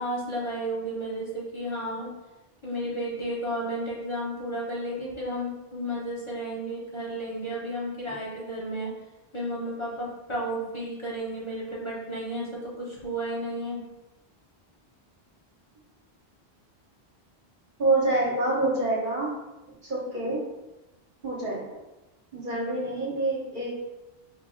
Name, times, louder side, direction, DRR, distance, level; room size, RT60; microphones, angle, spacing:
voice 1, 0.0-2.1 2.6-8.9 9.3-13.8, right 1 dB, 30° left, -7 dB, 1.0 m, -32 dB
voice 2, 17.8-19.3 19.8-20.4 21.2-21.6 22.3-23.7, right 2 dB, 55° right, -4 dB, 1.3 m, -26 dB
4.5 x 2.6 x 3.9 m, 1.0 s
omnidirectional pair, 1.0 m